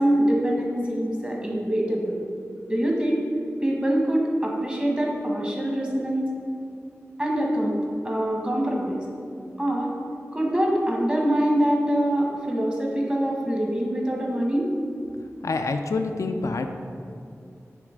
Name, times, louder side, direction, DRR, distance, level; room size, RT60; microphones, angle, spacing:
voice 1, 0.0-2.2 2.7-3.2 3.6-6.3 7.2-7.8 8.0-9.0 9.6-9.9 10.3-14.7, right 1 dB, 20° right, -2 dB, 1.3 m, -24 dB
voice 2, 15.4-16.7, left 3 dB, 90° left, 6 dB, 0.4 m, -26 dB
6.8 x 3.1 x 5.0 m, 2.5 s
wide cardioid pair, 50°, 5 cm